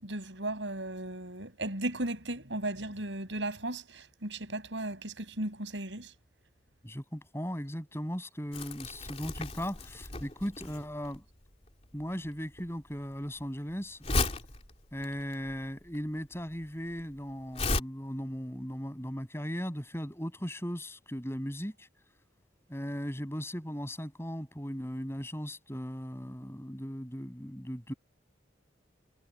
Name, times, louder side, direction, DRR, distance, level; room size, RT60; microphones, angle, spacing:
voice 1, 0.0-6.1, right 1 dB, 75° right, 7.3 m, -36 dB
voice 2, 6.8-11.2 11.9-14.0 14.9-21.9 22.7-27.9, equal, 15° left, 7.7 m, -37 dB
Crumpling crinkling, 8.5-17.8, left 3 dB, 35° left, 3.0 m, -35 dB
head